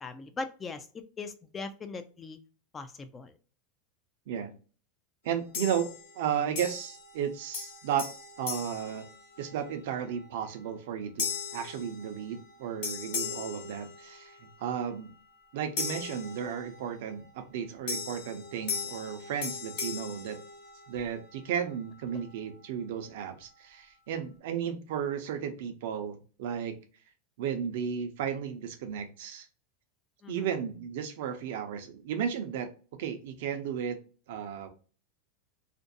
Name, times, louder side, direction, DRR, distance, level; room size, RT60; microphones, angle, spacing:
voice 1, 0.0-2.4 2.7-3.3 30.2-30.5, left 3 dB, 20° left, 9 dB, 0.4 m, -40 dB
voice 2, 5.2-5.9 6.1-8.1 8.4-9.1 9.4-15.1 15.5-20.4 20.9-26.8 27.4-29.5 30.3-32.7 33.0-34.0 34.3-34.7, right 8 dB, 70° right, 7 dB, 0.6 m, -34 dB
sound 1, 5.5-6.2 6.5-7.2 7.5-9.7 10.2-10.5 11.2-12.5 12.8-14.4 15.8-16.9 17.9-21.1, left 5 dB, 65° left, 1.0 m, -38 dB
2.5 x 2.2 x 2.6 m, 0.37 s
hypercardioid pair, 120°, 0 cm